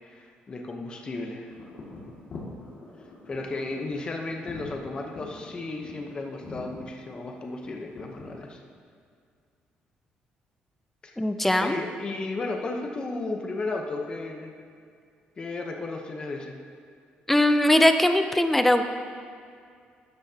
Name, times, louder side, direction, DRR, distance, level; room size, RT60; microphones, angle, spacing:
voice 1, 0.1-1.5 3.3-8.6 11.0-11.2 11.6-14.5 15.4-16.6, left 3 dB, 25° left, 2 dB, 0.9 m, -34 dB
sound 1, 1.5-8.5, left 3 dB, 50° left, 2.1 m, -44 dB
voice 2, 11.2-11.8 17.3-18.8, left 1 dB, 5° left, 8 dB, 0.5 m, -20 dB
12.5 x 9.6 x 2.9 m, 2.2 s
cardioid pair, 160°, 3 cm